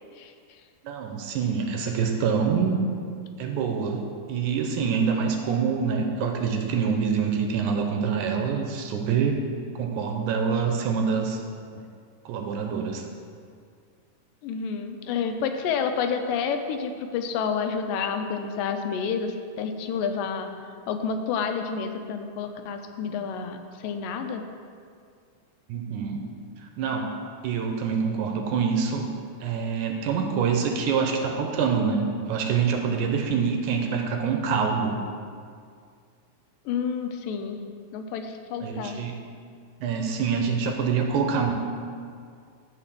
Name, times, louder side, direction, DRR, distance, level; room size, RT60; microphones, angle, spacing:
voice 1, 0.8-2.8 3.4-9.4 9.8-11.4 12.3-13.0 25.7-26.2 26.6-27.2 27.4-29.1 29.4-35.0 38.6-39.2 39.8-41.5, right 6 dB, 75° right, 3 dB, 2.1 m, -26 dB
voice 2, 14.4-19.3 19.6-20.5 20.9-23.6 23.8-24.4 36.7-37.6 37.9-39.0, left 6 dB, 85° left, 6 dB, 2.4 m, -29 dB
12.0 x 4.2 x 7.4 m, 2.2 s
omnidirectional pair, 3.8 m